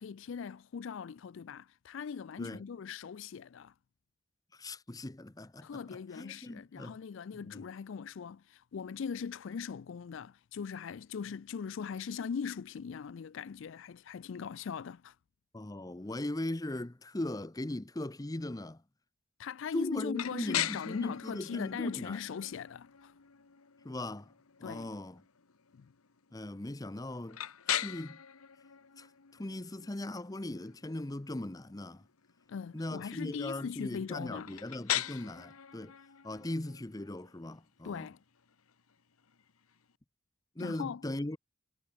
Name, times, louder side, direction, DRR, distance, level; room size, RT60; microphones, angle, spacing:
voice 1, 0.0-3.7 5.6-15.2 19.4-23.1 24.6-24.9 25.7-25.9 32.5-34.5 37.8-38.2 40.6-41.0, left 6 dB, 60° left, 0.4 m, -40 dB
voice 2, 4.5-5.7 6.1-7.0 7.3-7.6 15.5-18.8 19.7-22.2 23.8-24.3 24.6-25.2 26.3-27.4 27.7-28.2 29.0-29.1 29.4-32.0 32.7-35.9 36.2-38.1 40.6-41.4, left 1 dB, 15° left, 0.6 m, -39 dB
sound 1, 20.1-39.9, left 11 dB, 85° left, 1.1 m, -41 dB
head